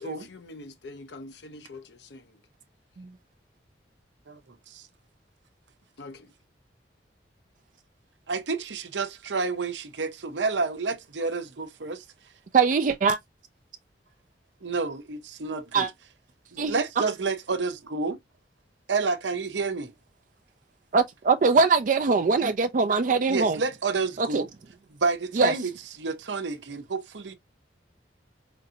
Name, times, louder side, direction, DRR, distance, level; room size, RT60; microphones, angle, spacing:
voice 1, 0.0-2.4 6.0-6.3, left 2 dB, 75° left, 0.6 m, -44 dB
voice 2, 8.3-12.0 14.6-15.9 16.5-18.2 18.9-19.9 23.3-24.5 24.9-27.3, right 4 dB, 85° right, 0.8 m, -29 dB
voice 3, 12.5-13.2 15.7-15.9 16.6-16.7 20.9-23.6 24.2-24.4 25.4-25.5, right 4 dB, 45° right, 0.4 m, -22 dB
5.2 x 2.6 x 2.7 m
head